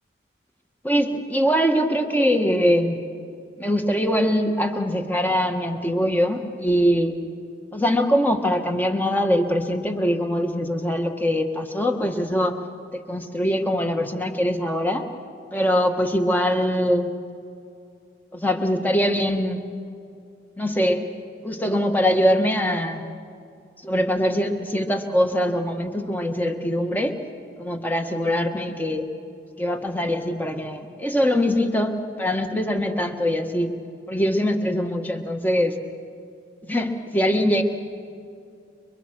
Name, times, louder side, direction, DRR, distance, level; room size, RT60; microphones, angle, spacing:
voice 1, 0.8-3.0 3.6-7.1 7.7-12.6 13.1-15.0 15.5-17.1 18.3-19.6 20.6-21.1 21.4-23.0 23.8-27.1 27.6-29.0 29.6-33.7 34.1-35.7 36.7-37.6, equal, 10° left, 5 dB, 1.4 m, -22 dB
29.5 x 23.0 x 6.1 m, 2.5 s
head